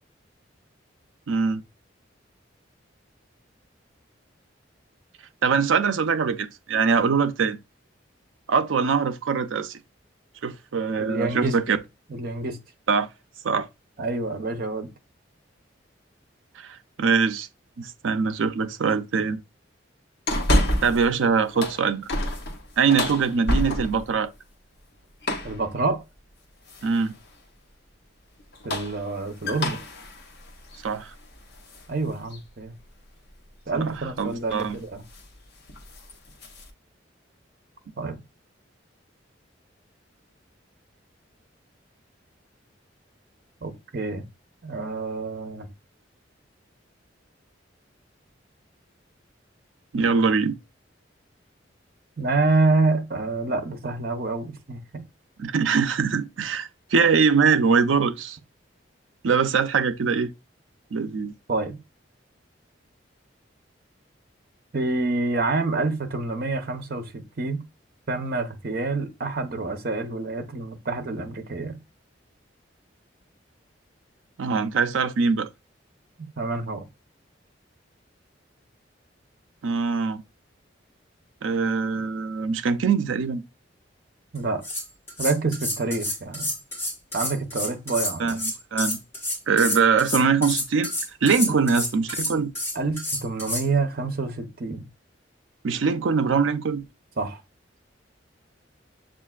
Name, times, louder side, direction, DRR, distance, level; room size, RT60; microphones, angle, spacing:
voice 1, 1.3-1.6 5.4-7.6 8.5-9.8 10.4-11.8 12.9-13.1 13.4-13.7 16.6-17.5 17.8-19.4 20.8-22.1 22.8-24.3 26.8-27.1 30.8-31.1 33.7-34.8 49.9-50.6 55.4-58.4 59.2-60.3 60.9-61.3 74.4-75.5 79.6-80.2 81.4-83.4 88.2-89.0 89.5-90.9 91.2-92.5 95.6-96.9, right 5 dB, 90° right, 0.5 m, -23 dB
voice 2, 11.0-11.8 12.1-12.6 14.0-14.9 25.4-26.0 28.6-29.8 31.9-32.7 33.7-35.0 38.0-38.2 43.6-44.2 44.6-45.7 52.2-55.0 61.5-61.8 64.7-67.6 68.1-71.8 76.2-76.8 84.3-84.6 85.2-86.5 87.1-88.4 91.5-91.6 92.7-94.8 97.2-97.4, right 3 dB, 50° right, 0.8 m, -27 dB
sound 1, 20.3-21.1 21.4-24.1 25.2-25.6 26.7-27.1 28.4-31.9 32.3-32.4 33.9-34.2 34.5-34.8 35.1-35.3 35.6-36.7, left 1 dB, 55° left, 0.9 m, -28 dB
sound 2, 84.4-84.5 84.6-93.7, left 1 dB, 15° left, 1.8 m, -29 dB
7.1 x 2.5 x 2.3 m
head